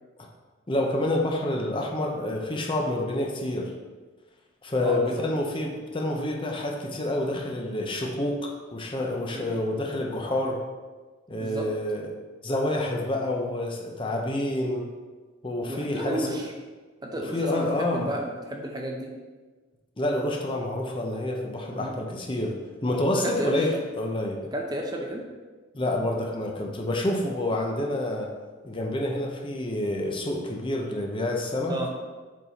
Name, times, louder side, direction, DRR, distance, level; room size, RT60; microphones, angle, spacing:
voice 1, 0.7-3.7 4.6-10.6 11.3-12.1 12.4-14.9 15.4-16.4 17.3-18.1 20.0-24.4 25.7-28.3 28.6-31.8, left 1 dB, 25° left, 0 dB, 0.7 m, -28 dB
voice 2, 4.8-5.1 9.3-9.6 11.3-11.7 15.7-16.5 17.0-19.1 21.7-21.9 23.1-23.7 24.5-25.2 31.7-31.9, right 1 dB, 20° right, 1 dB, 0.6 m, -32 dB
7.3 x 4.1 x 4.1 m, 1.3 s
head